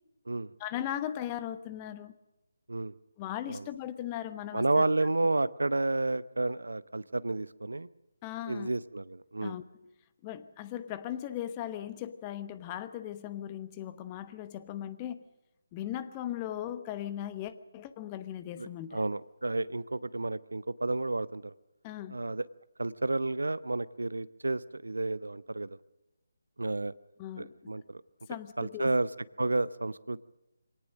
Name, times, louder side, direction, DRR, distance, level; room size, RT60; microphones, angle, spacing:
voice 1, 0.6-2.1 3.2-4.8 8.2-8.7 9.4-9.6 10.2-15.2 15.7-19.0 21.8-22.2 27.2-27.5 28.3-29.0, left 11 dB, 20° left, 12 dB, 1.1 m, -38 dB
voice 2, 4.5-7.9 8.5-9.6 18.6-21.5 22.1-22.5 22.8-25.8 26.6-26.9 27.4-28.0 28.6-29.1 29.4-30.2, right 2 dB, 75° right, 17 dB, 0.8 m, -31 dB
23.5 x 18.0 x 6.4 m, 0.96 s
figure-of-eight pair, 155°, 0 cm